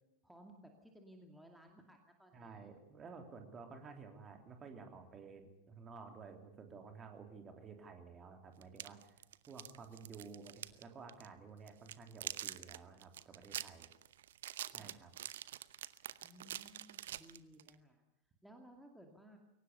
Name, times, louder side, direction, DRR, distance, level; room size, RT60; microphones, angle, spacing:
voice 1, 0.2-2.7 14.7-15.0 16.2-18.0 18.4-19.4, right 1 dB, ahead, 2 dB, 2.4 m, -59 dB
voice 2, 2.3-9.2 9.5-13.9 14.7-15.1, right 5 dB, 25° right, 5 dB, 3.4 m, -53 dB
sound 1, 8.6-10.8 11.1-11.3 11.7-17.8, right 12 dB, 60° right, 0.8 m, -46 dB
22.5 x 18.5 x 6.9 m, 0.92 s
figure-of-eight pair, 90°, 0 cm